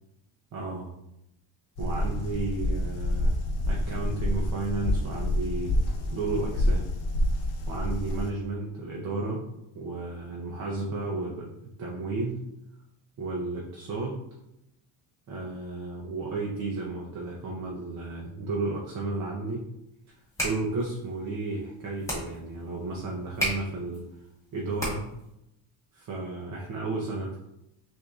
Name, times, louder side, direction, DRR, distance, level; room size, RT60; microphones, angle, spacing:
voice 1, 0.5-0.9 1.8-3.4 3.7-5.7 6.1-6.9 7.7-9.5 9.7-12.4 13.2-14.2 15.3-19.7 20.4-24.1 24.5-25.1 25.9-27.4, right 3 dB, 35° right, -2 dB, 0.6 m, -33 dB
sound 1, 1.8-8.3, left 1 dB, 50° left, 0.7 m, -28 dB
sound 2, 20.1-25.3, equal, 5° left, 1.1 m, -35 dB
6.1 x 2.7 x 2.3 m, 0.85 s
cardioid pair, 165°, 48 cm